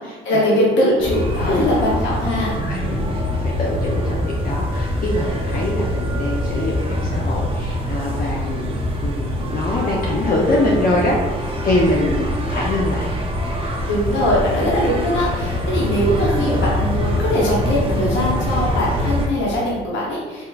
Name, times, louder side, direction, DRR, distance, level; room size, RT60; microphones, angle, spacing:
voice 1, 0.0-2.6 13.9-20.4, left 1 dB, 70° left, -4 dB, 0.8 m, -21 dB
sound 1, 1.0-19.3, equal, 25° right, 0.6 m, -24 dB
voice 2, 2.6-8.8 9.0-13.1, left 1 dB, 45° left, -3 dB, 0.5 m, -23 dB
3.3 x 2.9 x 2.3 m, 1.3 s
cardioid pair, 90°, 20 cm